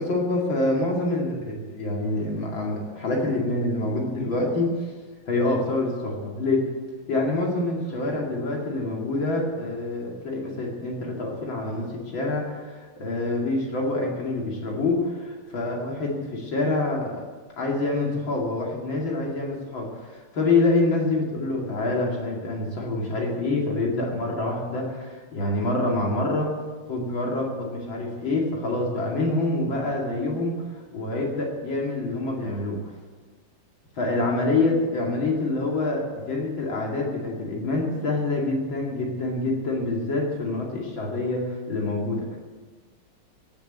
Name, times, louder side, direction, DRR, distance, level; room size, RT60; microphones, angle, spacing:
voice 1, 0.0-4.7 5.3-6.7 7.1-17.2 17.6-26.5 26.9-30.5 30.9-32.9 34.0-42.4, left 2 dB, 65° left, -2 dB, 3.1 m, -26 dB
17.0 x 7.2 x 8.1 m, 1.4 s
omnidirectional pair, 2.4 m